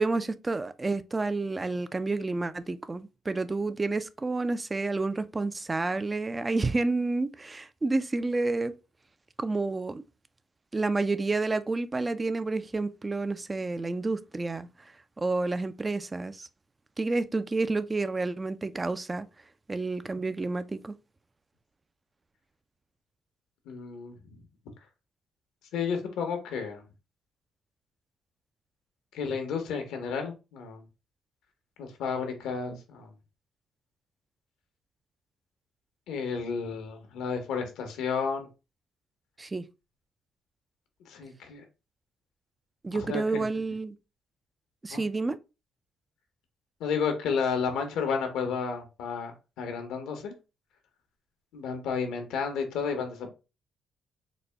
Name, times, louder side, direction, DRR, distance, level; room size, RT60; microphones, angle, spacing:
voice 1, 0.0-8.7 9.4-10.0 10.7-14.7 15.2-16.5 17.0-19.3 19.7-20.9 39.4-39.6 42.8-44.0 44.8-45.4, right 3 dB, 25° right, 0.3 m, -29 dB
voice 2, 23.7-24.4 25.7-26.8 29.1-30.8 31.8-33.1 36.1-38.5 41.1-41.6 42.9-43.4 44.9-45.0 46.8-50.3 51.5-53.3, left 6 dB, 90° left, 1.0 m, -32 dB
4.1 x 2.2 x 3.3 m
cardioid pair, 90°, 0 cm